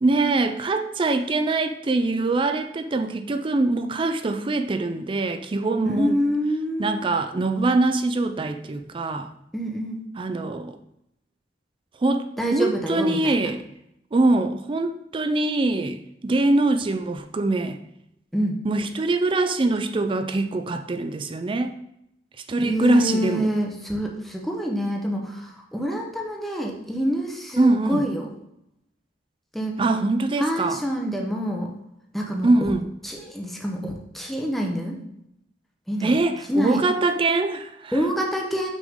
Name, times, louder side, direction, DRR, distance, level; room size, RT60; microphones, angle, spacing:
voice 1, 0.0-6.2 6.8-9.3 10.2-10.8 12.0-13.6 14.1-17.8 18.6-21.7 22.5-23.5 27.6-28.0 29.8-30.8 32.4-32.8 36.0-37.9, right 2 dB, 30° right, 8 dB, 0.4 m, -23 dB
voice 2, 5.8-6.9 9.5-10.0 12.4-13.5 18.3-18.6 22.6-28.3 29.5-29.8 30.4-31.7 32.1-32.5 33.0-35.0 35.9-36.1 36.5-36.8 37.9-38.7, equal, ahead, 0 dB, 0.8 m, -26 dB
6.1 x 5.5 x 3.6 m, 0.79 s
head